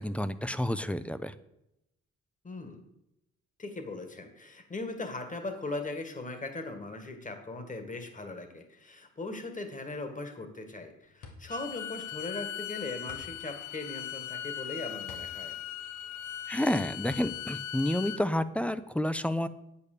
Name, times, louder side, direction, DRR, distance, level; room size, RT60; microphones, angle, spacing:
voice 1, 0.0-1.3 16.5-19.5, left 1 dB, 5° left, 14 dB, 0.6 m, -30 dB
voice 2, 2.4-2.8 3.6-15.6, left 2 dB, 25° left, 7 dB, 1.9 m, -39 dB
sound 1, 11.0-18.7, left 4 dB, 90° left, 2.0 m, -52 dB
Bowed string instrument, 11.5-18.2, left 11 dB, 70° left, 0.7 m, -39 dB
8.6 x 8.6 x 6.7 m, 0.84 s
cardioid pair, 90°, 30 cm